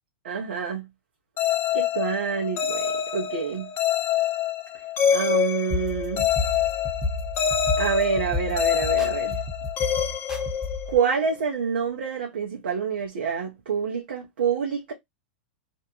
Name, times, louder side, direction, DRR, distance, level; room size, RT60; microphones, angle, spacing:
voice 1, 0.2-0.8 1.7-3.7 5.1-6.3 7.8-9.4 10.9-14.9, right 6 dB, 75° right, 0.8 m, -27 dB
sound 1, 1.4-11.2, left 9 dB, 35° left, 0.5 m, -26 dB
sound 2, 5.7-11.0, left 2 dB, 5° right, 0.9 m, -32 dB
2.6 x 2.1 x 2.9 m
hypercardioid pair, 110°, 6 cm